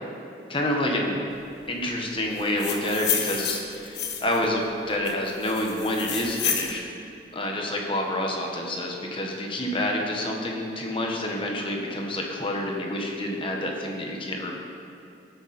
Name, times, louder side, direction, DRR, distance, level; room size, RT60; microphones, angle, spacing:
voice 1, 0.5-1.3 1.7-6.9 7.3-14.5, left 1 dB, 30° left, 0 dB, 1.4 m, -28 dB
sound 1, 2.4-4.4 5.0-6.7, left 7 dB, 65° left, 1.3 m, -30 dB
17.5 x 8.2 x 4.4 m, 2.6 s
head